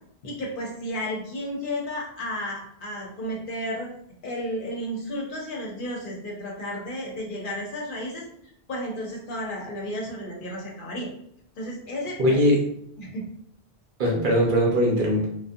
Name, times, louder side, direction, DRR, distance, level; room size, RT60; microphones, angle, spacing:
voice 1, 0.2-3.9 4.2-8.2 8.7-11.1 11.6-12.4 13.0-13.2, equal, 60° left, -2 dB, 0.8 m, -32 dB
voice 2, 12.2-12.6 14.0-15.3, equal, 60° right, -1 dB, 0.7 m, -20 dB
2.4 x 2.1 x 2.5 m, 0.71 s
omnidirectional pair, 1.0 m